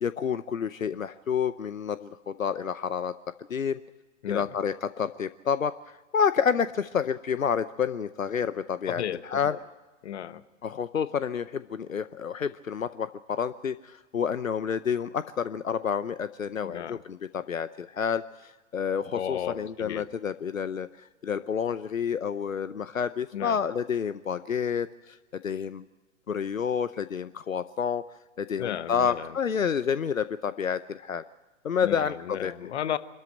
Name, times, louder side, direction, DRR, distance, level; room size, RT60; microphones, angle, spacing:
voice 1, 0.0-3.1 3.5-3.8 4.3-9.5 10.6-20.9 21.2-25.8 26.3-28.0 28.4-31.2 31.6-32.5, left 7 dB, 85° left, 15 dB, 0.7 m, -29 dB
voice 2, 8.9-9.6 10.0-10.4 16.6-17.0 19.1-20.1 23.3-23.6 28.6-29.3 31.8-33.0, left 10 dB, 55° left, 14 dB, 1.2 m, -34 dB
25.0 x 13.5 x 8.9 m, 1.2 s
figure-of-eight pair, 110°, 39 cm